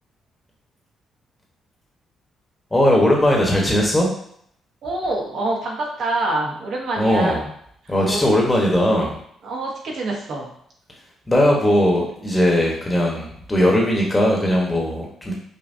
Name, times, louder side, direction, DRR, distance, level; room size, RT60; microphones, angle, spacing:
voice 1, 2.7-4.1 7.0-7.4 7.9-9.2 11.3-15.3, left 1 dB, 15° left, -1 dB, 1.1 m, -18 dB
voice 2, 4.8-7.5 7.8-8.2 9.4-10.5, right 2 dB, 65° right, -2 dB, 1.0 m, -26 dB
5.3 x 2.2 x 2.7 m, 0.68 s
cardioid pair, 90°, 0 cm